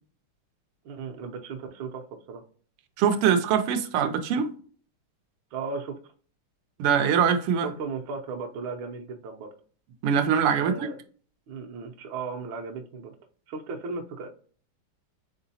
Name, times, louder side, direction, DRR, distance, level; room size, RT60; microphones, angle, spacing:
voice 1, 0.8-2.4 5.5-6.1 7.6-9.5 10.5-10.9 11.5-13.2 13.5-14.3, right 4 dB, 70° right, 1.4 m, -36 dB
voice 2, 3.0-4.5 6.8-7.7 10.0-10.9, right 7 dB, 90° right, 1.5 m, -23 dB
4.3 x 3.8 x 2.7 m
omnidirectional pair, 2.4 m